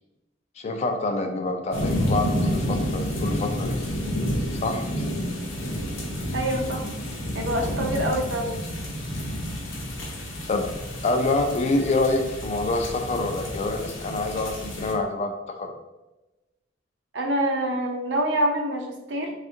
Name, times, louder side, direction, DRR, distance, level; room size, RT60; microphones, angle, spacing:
voice 1, 0.6-3.8 4.6-4.8 10.5-10.7 11.0-15.3 15.6-15.7, left 2 dB, 35° left, 4 dB, 0.3 m, -26 dB
sound 1, 1.7-14.9, equal, 90° left, 0.7 m, -30 dB
voice 2, 6.3-6.8 7.3-8.6 17.1-19.3, right 1 dB, 65° right, 1 dB, 0.5 m, -26 dB
3.3 x 2.4 x 2.7 m, 1.0 s
head